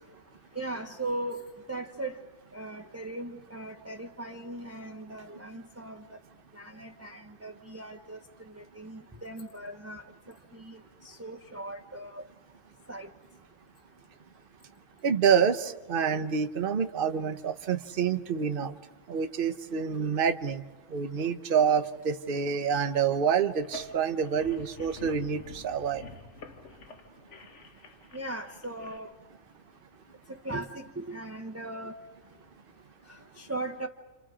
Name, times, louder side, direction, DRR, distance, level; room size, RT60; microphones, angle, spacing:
voice 1, 0.5-2.2 2.5-6.2 6.5-12.3 12.9-13.1 28.1-29.1 30.3-31.9 33.1-33.9, right 2 dB, 15° right, 4 dB, 0.8 m, -39 dB
voice 2, 15.0-18.8 19.1-20.6 20.9-26.0, right 7 dB, 50° right, 8 dB, 1.1 m, -27 dB
sound 1, 23.6-29.0, left 2 dB, 65° left, 1.7 m, -47 dB
29.5 x 27.5 x 5.0 m, 1.2 s
omnidirectional pair, 1.3 m